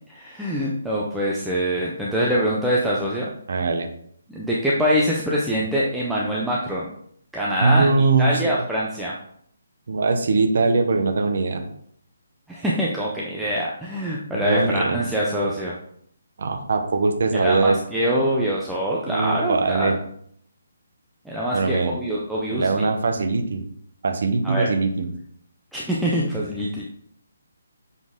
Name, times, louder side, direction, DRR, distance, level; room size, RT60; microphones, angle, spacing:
voice 1, 0.1-3.3 4.3-6.9 7.3-7.9 8.2-9.2 12.5-15.7 17.4-19.9 21.3-22.9 24.4-24.7 25.7-26.8, equal, ahead, -6 dB, 0.4 m, -24 dB
voice 2, 3.5-3.9 7.6-8.6 9.9-11.6 14.3-15.0 16.4-17.8 19.1-20.0 21.5-21.9 22.5-23.6 24.0-25.1, right 3 dB, 45° right, 6 dB, 0.7 m, -21 dB
7.2 x 4.1 x 3.5 m, 0.65 s
hypercardioid pair, 180°, 0 cm